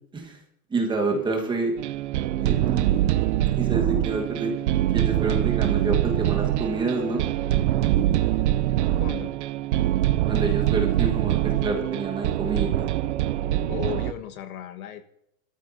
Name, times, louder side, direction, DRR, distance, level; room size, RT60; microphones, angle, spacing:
voice 1, 0.7-1.7 2.4-2.9 3.5-4.5 4.9-7.3 10.3-12.9, right 3 dB, 10° right, 2 dB, 1.3 m, -27 dB
sound 1, 1.8-14.1, right 13 dB, 55° right, 0.6 m, -24 dB
voice 2, 9.0-9.3 13.7-15.0, left 10 dB, 75° left, 7 dB, 1.4 m, -35 dB
27.0 x 13.0 x 2.6 m, 0.75 s
supercardioid pair, 160°, 42 cm